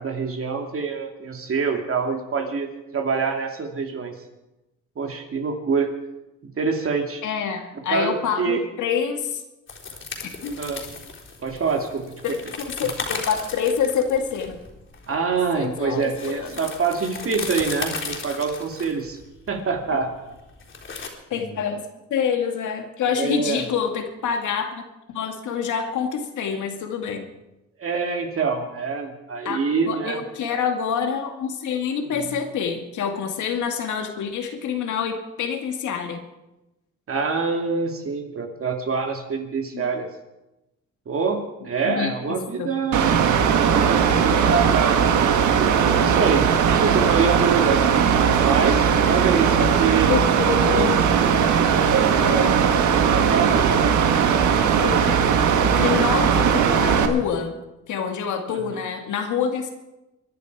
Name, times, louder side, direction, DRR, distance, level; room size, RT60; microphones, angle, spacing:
voice 1, 0.0-4.2 5.0-5.9 6.6-7.2 7.9-8.6 10.6-10.8 11.4-12.1 12.8-12.9 15.1-19.2 19.5-20.1 23.2-23.7 27.8-30.2 32.1-32.2 37.1-40.1 41.1-43.2 43.5-47.8 48.4-50.1 50.6-50.9 51.8-52.1 53.1-53.9 58.5-58.6, right 5 dB, 45° right, 3 dB, 2.7 m, -25 dB
voice 2, 7.2-9.4 10.4-10.6 12.2-14.6 15.5-16.5 21.3-27.3 29.4-29.6 29.9-36.2 39.7-39.9 41.8-42.7 50.1-51.0 52.2-52.6 54.8-55.2 55.6-57.6 57.9-59.7, left 7 dB, 75° left, 5 dB, 2.1 m, -26 dB
sound 1, 9.7-21.1, left 4 dB, 40° left, 3.9 m, -35 dB
Mechanical fan, 42.9-57.1, right 7 dB, 75° right, 1.6 m, -19 dB
23.5 x 11.0 x 4.8 m, 0.99 s
cardioid pair, 90°, 30 cm